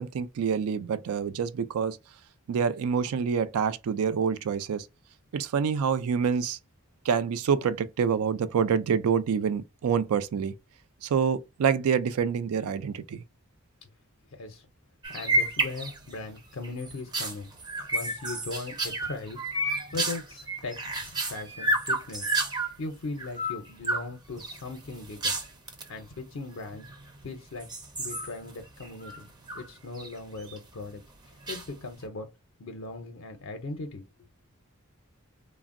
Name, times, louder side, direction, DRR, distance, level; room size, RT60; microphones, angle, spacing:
voice 1, 0.0-2.0 2.5-4.9 5.3-6.6 7.0-10.5 11.0-13.2, right 6 dB, 85° right, 0.3 m, -27 dB
sound 1, 15.0-16.2 16.6-22.8 23.2-24.1 24.4-25.9 26.7-27.3 27.6-29.7 30.0-30.6 31.5-32.0, right 2 dB, 20° right, 0.4 m, -31 dB
voice 2, 15.1-17.5 17.9-19.4 19.9-22.3 22.8-25.3 25.9-26.8 27.2-27.7 28.0-29.3 29.5-31.0 31.5-32.3 32.6-34.0, left 3 dB, 65° left, 0.5 m, -38 dB
3.4 x 2.0 x 2.4 m
head